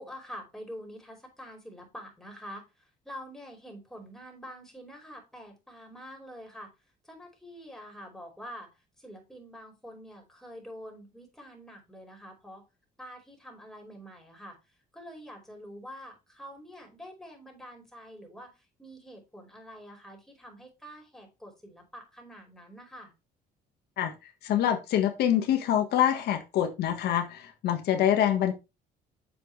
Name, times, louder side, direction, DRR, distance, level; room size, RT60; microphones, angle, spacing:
voice 1, 0.0-6.7 7.0-12.6 13.0-14.6 14.9-23.1, equal, 5° left, 4.9 m, -46 dB
voice 2, 24.0-28.5, left 10 dB, 70° left, 1.6 m, -26 dB
9.0 x 7.4 x 3.3 m
cardioid pair, 110°, 17 cm